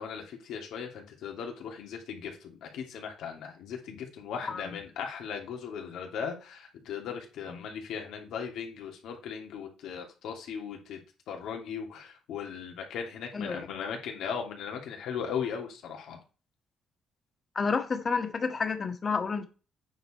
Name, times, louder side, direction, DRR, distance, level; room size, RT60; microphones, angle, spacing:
voice 1, 0.0-11.0 11.3-16.2, left 7 dB, 80° left, 2 dB, 2.7 m, -38 dB
voice 2, 17.5-19.4, left 5 dB, 40° left, 8 dB, 1.6 m, -30 dB
9.0 x 5.0 x 4.4 m, 0.34 s
cardioid pair, 90°, 0 cm